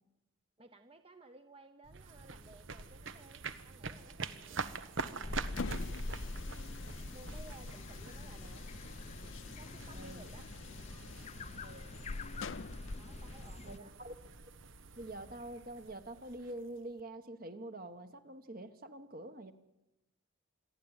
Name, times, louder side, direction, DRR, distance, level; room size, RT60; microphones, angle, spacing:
voice 1, 0.6-4.8 5.2-5.5 7.1-8.6 9.6-10.5 10.9-11.1 12.9-13.9, right 2 dB, 30° right, 7 dB, 0.8 m, -57 dB
sound 1, 1.8-17.0, right 4 dB, 75° right, 1.1 m, -46 dB
sound 2, 5.2-13.8, left 2 dB, 35° left, 0.6 m, -44 dB
sound 3, 5.4-13.5, left 4 dB, 75° left, 0.6 m, -47 dB
voice 2, 9.9-10.3 11.6-11.9 13.6-14.1 15.0-19.5, right 1 dB, 45° right, 9 dB, 1.3 m, -46 dB
26.5 x 11.0 x 9.0 m, 0.93 s
head